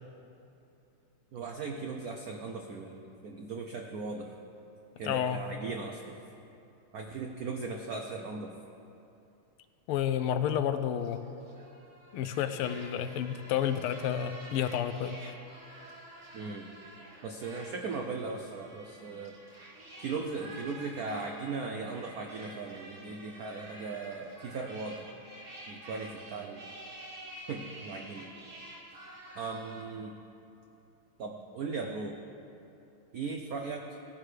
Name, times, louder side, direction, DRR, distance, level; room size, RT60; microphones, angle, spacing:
voice 1, 1.3-4.4 5.0-6.2 6.9-8.6 16.3-16.7 17.2-19.4 20.0-25.1 25.7-26.6 27.5-28.3 29.3-30.2 31.2-32.2 33.1-34.0, right 4 dB, 80° right, 2 dB, 0.8 m, -38 dB
voice 2, 5.0-5.4 9.9-11.2 12.1-15.3 29.3-29.4, left 9 dB, 85° left, 10 dB, 1.5 m, -30 dB
sound 1, 10.8-29.8, right 1 dB, 35° right, 1.7 m, -49 dB
17.5 x 10.0 x 3.3 m, 2.8 s
omnidirectional pair, 2.4 m